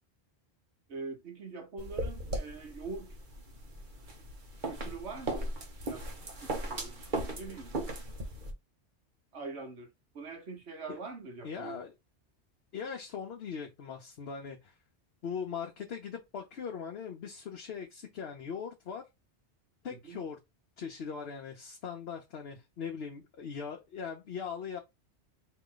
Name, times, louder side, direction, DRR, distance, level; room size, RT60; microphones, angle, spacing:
voice 1, 0.9-3.2 4.6-5.5 5.8-6.1 6.4-7.8 9.3-11.8 19.9-20.2, right 4 dB, 80° right, 1.4 m, -44 dB
sound 1, 1.8-8.5, right 1 dB, 45° right, 1.2 m, -38 dB
voice 2, 11.4-11.9 12.7-14.7 15.2-19.1 19.8-20.4 20.8-24.8, left 6 dB, 70° left, 1.0 m, -40 dB
4.4 x 3.0 x 3.8 m
omnidirectional pair, 1.1 m